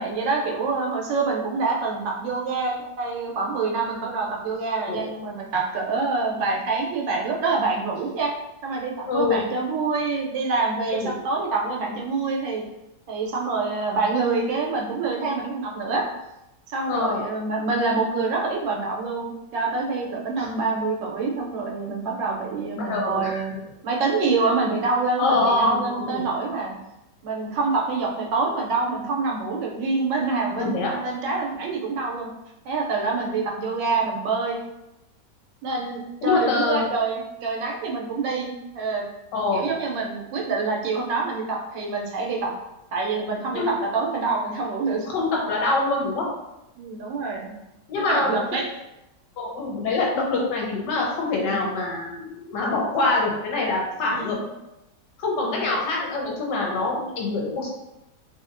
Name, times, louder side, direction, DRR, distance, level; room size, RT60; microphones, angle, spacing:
voice 1, 0.0-8.3 8.6-12.6 13.1-16.1 16.7-23.5 23.8-26.7 27.2-32.3 32.6-34.6 35.6-39.1 39.5-42.5 42.9-45.1 46.8-47.5 48.1-48.7 51.4-51.7 54.1-54.4 55.4-55.7, right 3 dB, 85° right, -1 dB, 1.3 m, -26 dB
voice 2, 9.1-9.4 10.8-11.1 16.9-17.2 20.4-20.5 22.8-23.5 24.4-24.5 25.2-26.3 30.6-30.9 36.2-36.9 39.3-39.7 43.5-43.7 45.1-46.3 47.9-48.6 49.4-54.4 55.2-57.7, left 3 dB, 75° left, -2 dB, 1.3 m, -25 dB
3.0 x 2.7 x 2.5 m, 0.92 s
omnidirectional pair, 1.9 m